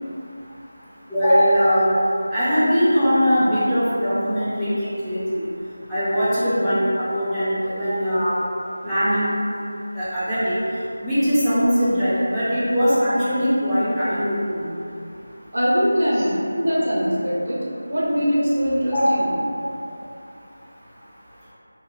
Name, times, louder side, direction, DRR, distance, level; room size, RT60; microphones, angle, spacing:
voice 1, 1.1-1.9 2.3-4.7 5.0-5.5 5.9-8.4 8.8-9.3 9.9-10.6 11.0-14.7 18.9-19.1, equal, ahead, -21 dB, 0.4 m, -20 dB
voice 2, 15.5-19.3, equal, 70° right, -6 dB, 0.7 m, -22 dB
2.9 x 2.4 x 2.3 m, 2.6 s
figure-of-eight pair, 175°, 0 cm